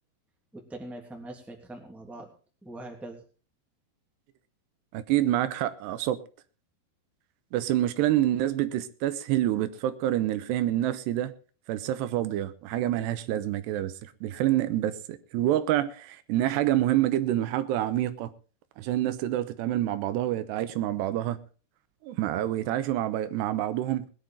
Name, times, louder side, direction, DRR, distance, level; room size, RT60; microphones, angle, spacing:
voice 1, 0.5-2.3 2.6-3.2, right 1 dB, ahead, 2.0 m, -42 dB
voice 2, 4.9-6.2 7.5-11.3 11.7-18.3 18.8-21.4 22.0-24.1, right 13 dB, 85° right, 3.0 m, -27 dB
21.0 x 10.5 x 3.8 m
omnidirectional pair, 4.9 m